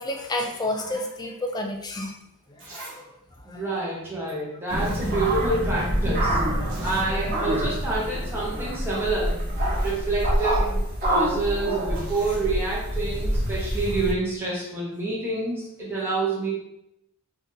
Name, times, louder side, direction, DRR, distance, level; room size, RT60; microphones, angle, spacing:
voice 1, 0.0-2.1 2.5-3.1 3.4-3.6 6.6-7.2 7.6-7.7, left 1 dB, 20° left, 3 dB, 0.3 m, -31 dB
Zipper (clothing), 2.6-3.0 3.3-3.4 4.3-4.4 4.6-5.6 5.9-6.0 6.7-7.1 7.5-7.6 8.0-8.2 9.0-9.1 9.4-10.0 11.9-12.5 13.3-13.4, right 2 dB, 60° right, 1.1 m, -44 dB
voice 2, 3.4-6.4 6.8-9.4 9.8-16.5, right 2 dB, 10° right, -7 dB, 0.7 m, -28 dB
sound 1, 4.7-14.1, right 1 dB, 40° right, 1.0 m, -26 dB
2.7 x 2.4 x 3.7 m, 0.83 s
head